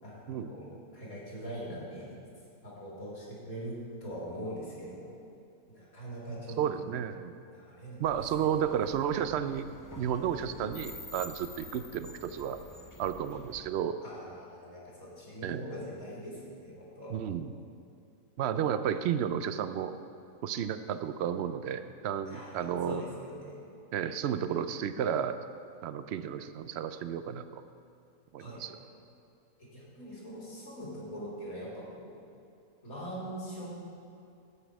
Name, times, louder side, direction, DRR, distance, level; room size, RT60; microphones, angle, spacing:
voice 1, 0.0-2.1 2.6-5.1 5.7-6.9 7.5-8.0 8.4-8.8 14.0-17.2 22.3-23.6 28.4-28.6 29.6-32.1 32.8-33.7, equal, 75° left, -6 dB, 3.7 m, -42 dB
voice 2, 6.6-7.3 8.0-9.7 10.0-12.6 13.0-14.0 15.4-15.6 17.1-17.5 18.4-19.9 20.4-23.0 23.9-25.4 25.8-27.6 28.3-28.8, right 9 dB, 65° right, 11 dB, 0.7 m, -32 dB
sound 1, 8.0-13.7, left 2 dB, 30° left, 0.3 m, -48 dB
13.5 x 8.2 x 4.8 m, 2.5 s
omnidirectional pair, 1.5 m